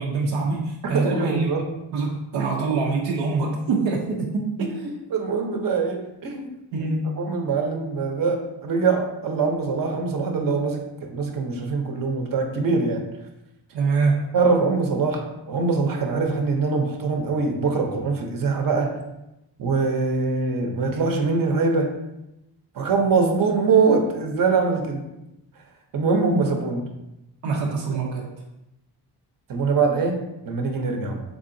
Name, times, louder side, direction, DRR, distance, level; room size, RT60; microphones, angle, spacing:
voice 1, 0.0-1.5 1.9-4.8 6.7-7.2 13.7-14.3 27.4-28.3, right 3 dB, 90° right, -1 dB, 0.6 m, -24 dB
voice 2, 0.8-1.7 4.6-6.5 7.2-13.1 14.3-19.0 19.6-22.0 22.7-25.1 25.9-26.9 27.9-28.0 29.5-31.2, right 4 dB, 50° right, 4 dB, 0.7 m, -23 dB
3.7 x 3.5 x 2.6 m, 0.90 s
cardioid pair, 115°, 43 cm